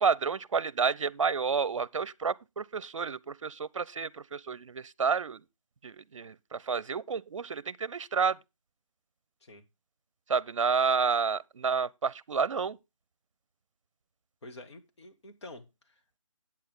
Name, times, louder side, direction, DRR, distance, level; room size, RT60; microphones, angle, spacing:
voice 1, 0.0-5.4 5.8-8.4 10.3-12.8, right 5 dB, 65° right, 0.6 m, -30 dB
voice 2, 14.4-16.2, left 1 dB, 55° left, 2.2 m, -49 dB
10.5 x 8.5 x 3.7 m
figure-of-eight pair, 155°, 17 cm